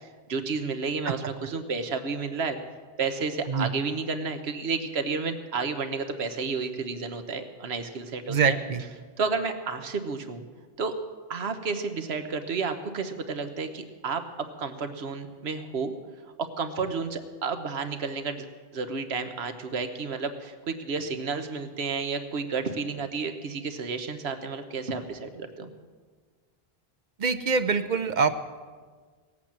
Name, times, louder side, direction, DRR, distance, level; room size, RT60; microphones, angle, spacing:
voice 1, 0.0-2.6 3.0-8.6 9.2-10.4 10.8-10.9 11.3-15.9 16.6-18.5 18.7-25.7, right 4 dB, 85° right, 8 dB, 1.3 m, -31 dB
voice 2, 8.3-8.8 27.2-28.4, right 5 dB, 50° right, 11 dB, 0.7 m, -24 dB
18.0 x 8.4 x 7.3 m, 1.5 s
omnidirectional pair, 1.0 m